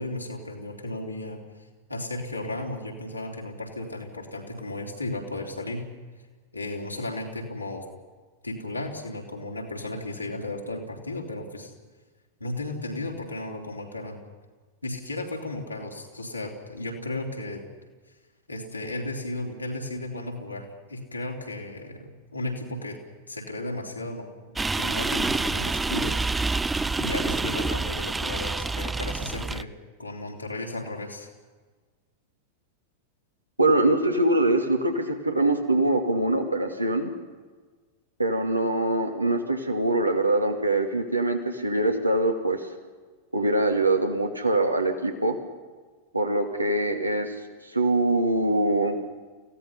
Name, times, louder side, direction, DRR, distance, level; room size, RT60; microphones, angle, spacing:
voice 1, 0.0-1.4 1.9-5.8 6.5-7.8 8.4-11.7 12.4-14.2 14.8-17.6 18.5-23.0 23.3-24.3 24.8-26.2 27.0-29.7 30.0-31.3, left 2 dB, 85° left, 0 dB, 3.6 m, -34 dB
sound 1, 24.6-29.6, right 3 dB, 10° right, 0.6 m, -27 dB
voice 2, 33.6-37.1 38.2-42.7 43.3-45.4 46.1-47.3 47.7-49.0, right 2 dB, 85° right, 4 dB, 2.5 m, -23 dB
29.0 x 17.0 x 5.7 m, 1.4 s
figure-of-eight pair, 90°, 0 cm